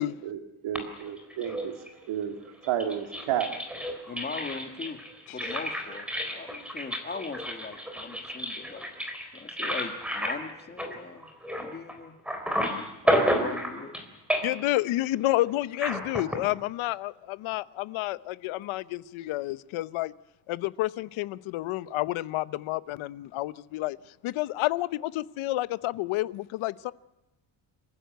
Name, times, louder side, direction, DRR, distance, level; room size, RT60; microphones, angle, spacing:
voice 1, 0.2-1.8 2.1-2.3 2.6-3.5, right 10 dB, 70° right, 2.2 m, -31 dB
sound 1, 0.7-2.0 2.6-12.0 12.3-14.0 14.3-14.7 15.7-16.4, equal, ahead, 3.9 m, -31 dB
voice 2, 4.1-5.0 5.3-8.9 9.3-11.3 11.6-12.1 13.0-13.9, left 4 dB, 20° left, 2.1 m, -40 dB
voice 3, 14.4-20.1 20.5-24.0 24.2-26.9, left 16 dB, 75° left, 0.9 m, -30 dB
27.0 x 15.5 x 9.3 m
cardioid pair, 165°, 48 cm